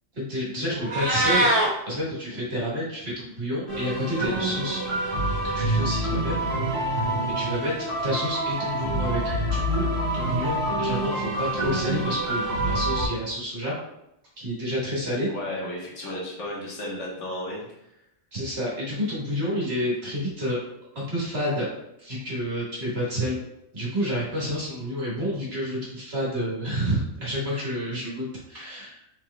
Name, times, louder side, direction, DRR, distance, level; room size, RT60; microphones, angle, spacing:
voice 1, 0.1-1.5 1.9-4.8 5.2-6.5 7.4-9.2 9.5-9.8 10.1-13.8 14.4-15.3 18.3-20.6 21.0-21.7 22.0-23.4 23.7-29.0, equal, 55° right, -6 dB, 1.8 m, -29 dB
Meow, 0.7-1.7, right 1 dB, 90° right, 1.5 m, -22 dB
sound 1, 3.7-13.1, right 1 dB, 35° left, 1.8 m, -27 dB
voice 2, 15.3-17.6, left 1 dB, 75° left, -5 dB, 1.6 m, -33 dB
4.4 x 4.3 x 2.2 m, 0.84 s
omnidirectional pair, 1.3 m